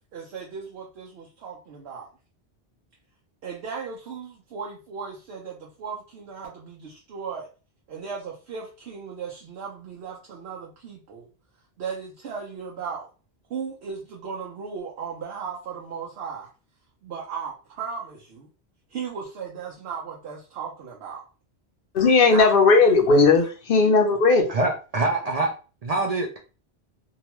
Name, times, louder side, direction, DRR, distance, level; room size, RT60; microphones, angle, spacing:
voice 1, 0.1-2.1 3.4-7.5 7.9-11.3 11.8-13.1 13.5-16.5 17.0-18.5 18.9-21.2 22.3-22.6 23.0-23.3, right 6 dB, 75° right, -1 dB, 0.9 m, -36 dB
voice 2, 21.9-24.5, left 4 dB, 60° left, 4 dB, 0.7 m, -17 dB
voice 3, 24.5-25.5 25.8-26.4, right 2 dB, 55° right, 2 dB, 0.4 m, -24 dB
2.9 x 2.2 x 2.9 m, 0.34 s
omnidirectional pair, 1.1 m